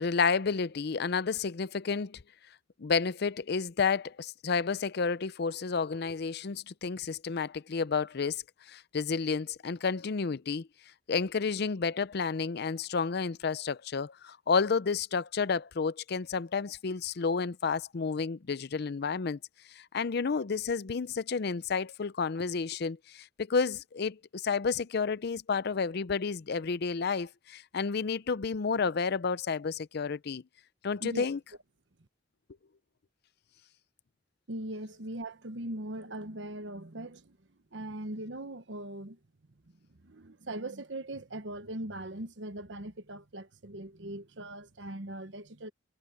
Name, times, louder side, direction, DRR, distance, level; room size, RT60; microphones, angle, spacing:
voice 1, 0.0-2.2 2.8-10.7 11.1-19.4 19.7-30.4 30.8-31.4, left 5 dB, 60° left, 0.5 m, -31 dB
voice 2, 34.5-37.4 37.7-39.2 39.8-45.7, right 1 dB, 70° right, 1.2 m, -40 dB
head